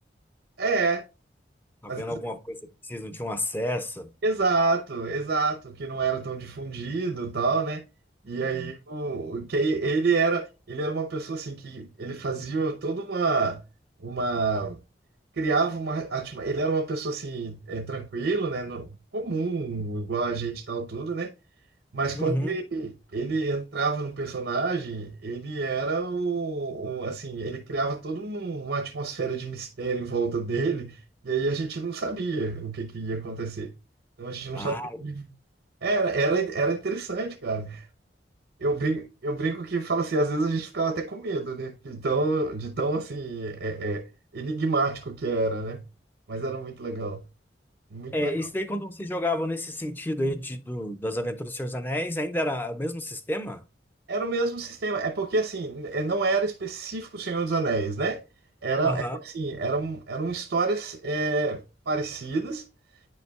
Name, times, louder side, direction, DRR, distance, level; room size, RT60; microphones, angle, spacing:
voice 1, 0.6-1.0 1.9-2.0 4.2-7.8 8.2-13.6 14.0-14.8 15.4-21.3 21.9-33.7 34.2-34.7 35.0-35.3 35.8-37.9 38.6-44.1 44.3-45.8 46.3-47.2 47.9-48.3 54.1-58.2 58.6-62.6, right 3 dB, 85° right, 0.7 m, -28 dB
voice 2, 1.8-2.6 2.8-4.1 8.5-8.7 22.2-22.6 34.5-35.0 48.1-53.6 58.8-59.2, left 1 dB, 10° left, 0.4 m, -30 dB
9.2 x 5.4 x 2.3 m
head